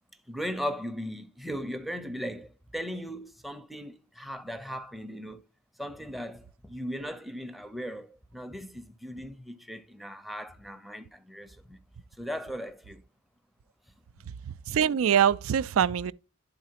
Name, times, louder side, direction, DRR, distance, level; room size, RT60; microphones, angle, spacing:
voice 1, 0.3-5.4 5.8-11.8 12.2-13.0, equal, ahead, 0.6 m, -38 dB
voice 2, 14.5-16.1, right 8 dB, 70° right, 0.4 m, -24 dB
11.5 x 4.0 x 2.8 m
head